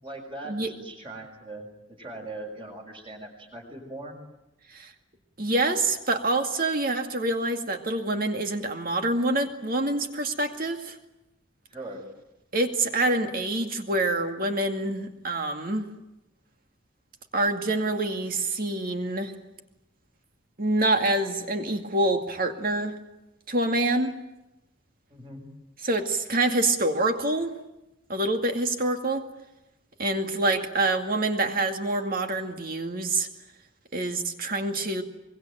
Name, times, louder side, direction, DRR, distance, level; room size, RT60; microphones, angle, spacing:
voice 1, 0.0-4.2 11.7-12.0 25.1-25.4, right 2 dB, 25° right, 2 dB, 6.3 m, -40 dB
voice 2, 5.4-11.0 12.5-15.9 17.3-19.3 20.6-23.0 23.5-24.2 25.8-27.6 28.1-29.3 30.0-33.3 33.9-35.0, right 2 dB, 40° right, 5 dB, 2.3 m, -26 dB
24.0 x 22.5 x 9.1 m, 0.94 s
head